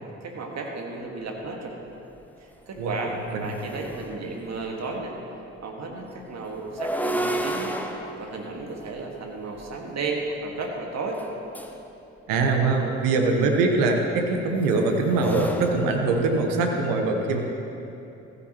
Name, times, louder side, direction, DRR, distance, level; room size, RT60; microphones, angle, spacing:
voice 1, 0.2-1.8 2.4-5.2 5.6-7.7 8.2-11.2, right 3 dB, 50° right, 1 dB, 1.8 m, -33 dB
sound 1, 2.2-2.3 2.7-4.7 6.5-9.8 11.1-11.8 13.3-16.7, right 1 dB, 5° left, 0.9 m, -34 dB
voice 2, 2.8-3.4 12.3-17.4, right 3 dB, 70° right, 3 dB, 1.2 m, -23 dB
15.0 x 9.4 x 3.0 m, 2.9 s
hypercardioid pair, 45°, 35 cm